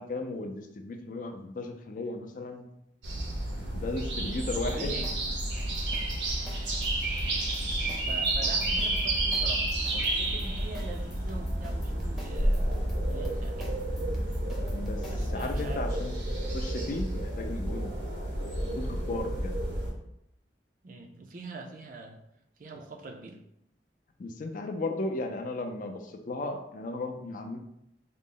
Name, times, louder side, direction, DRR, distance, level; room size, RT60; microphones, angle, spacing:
voice 1, 0.0-2.7 3.7-5.0 14.7-16.1 16.5-17.9 18.6-19.6 24.2-27.6, left 2 dB, 45° left, 5 dB, 0.4 m, -35 dB
sound 1, 3.0-19.9, right 1 dB, 85° right, 0.9 m, -30 dB
voice 2, 4.4-5.1 8.1-12.7 13.1-13.7 15.0-16.1 20.8-22.2 22.6-23.4, right 3 dB, 45° right, 4 dB, 0.4 m, -43 dB
sound 2, 4.7-15.7, equal, ahead, 0.6 m, -43 dB
3.9 x 2.0 x 3.7 m, 0.79 s
head